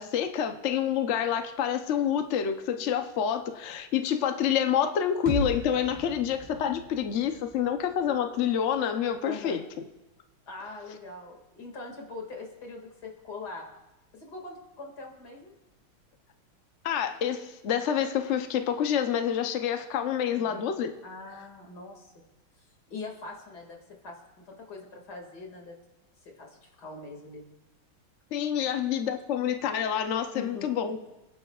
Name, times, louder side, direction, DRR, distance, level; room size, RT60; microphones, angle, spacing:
voice 1, 0.0-9.6 16.8-20.9 28.3-31.0, left 9 dB, 75° left, 6 dB, 0.6 m, -28 dB
sound 1, 5.3-9.1, right 2 dB, 15° right, 3.2 m, -38 dB
voice 2, 9.3-9.6 10.5-13.7 14.1-15.5 20.3-20.6 21.0-22.1 22.9-23.8 24.0-25.8 26.2-27.4 28.6-28.7 30.3-30.8, left 3 dB, 50° left, 1 dB, 2.7 m, -42 dB
28.5 x 10.5 x 2.4 m, 1.0 s
omnidirectional pair, 2.3 m